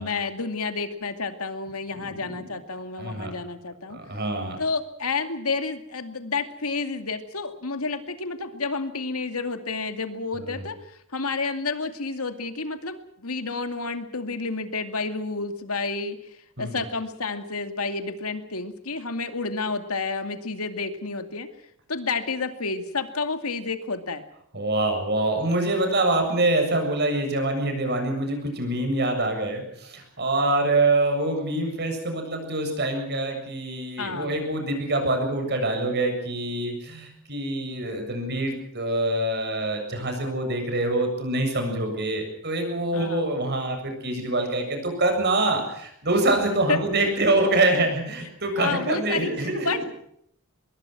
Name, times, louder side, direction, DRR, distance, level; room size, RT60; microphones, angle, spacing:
voice 1, 0.0-4.0 4.6-16.2 16.6-21.5 21.9-24.3 34.0-34.4 42.9-43.3 46.7-46.8 48.6-49.3 49.6-49.8, left 4 dB, 85° left, 8 dB, 2.4 m, -30 dB
voice 2, 2.0-2.4 3.0-3.3 3.9-4.6 10.3-10.6 16.6-16.8 24.5-49.8, right 2 dB, 50° right, 5 dB, 7.4 m, -25 dB
24.5 x 22.0 x 6.1 m, 0.70 s
head